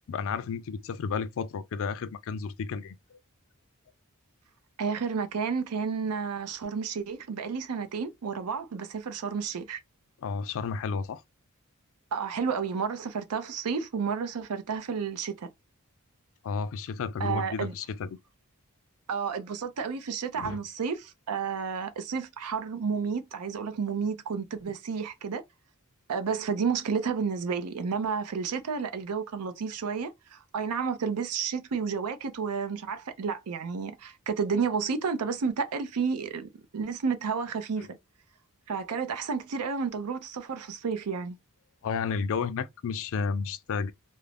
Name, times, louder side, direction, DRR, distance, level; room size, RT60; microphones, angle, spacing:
voice 1, 0.1-3.2 10.2-11.2 16.4-18.2 20.4-20.6 41.8-43.9, left 5 dB, 60° left, 0.4 m, -32 dB
voice 2, 4.8-9.8 12.1-15.5 17.2-17.7 19.1-25.4 26.1-38.0 38.7-41.4, right 5 dB, 80° right, 0.5 m, -31 dB
2.4 x 2.0 x 3.2 m
head